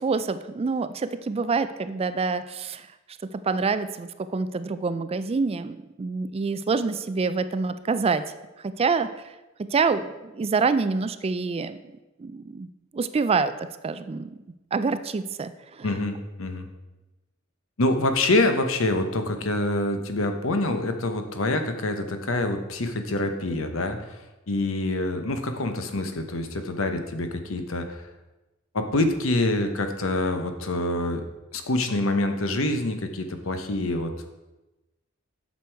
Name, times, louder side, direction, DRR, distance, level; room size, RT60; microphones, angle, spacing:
voice 1, 0.0-2.9 3.4-8.2 8.6-9.1 9.6-11.8 12.2-12.7 12.9-14.4 14.7-15.9, right 4 dB, 30° right, 12 dB, 0.3 m, -26 dB
voice 2, 15.8-16.7 17.8-24.2 24.5-28.1 28.7-31.2 31.5-34.3, left 2 dB, 70° left, 7 dB, 0.9 m, -26 dB
8.2 x 6.2 x 4.5 m, 1.0 s
head